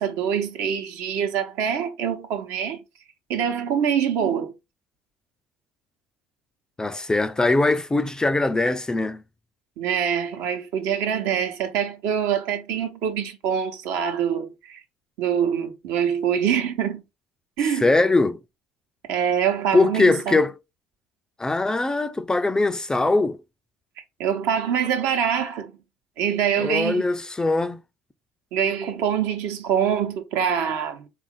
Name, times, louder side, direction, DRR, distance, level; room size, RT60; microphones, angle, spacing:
voice 1, 0.0-2.8 3.3-4.5 9.8-14.8 15.2-17.0 17.6-17.9 19.1-20.4 24.2-25.7 26.2-27.1 28.5-31.1, right 8 dB, 70° right, 0.9 m, -24 dB
voice 2, 6.8-9.2 17.8-18.4 19.7-20.5 21.4-23.4 26.6-27.8, left 2 dB, 15° left, 0.4 m, -21 dB
3.6 x 2.5 x 3.7 m
hypercardioid pair, 75°, 5 cm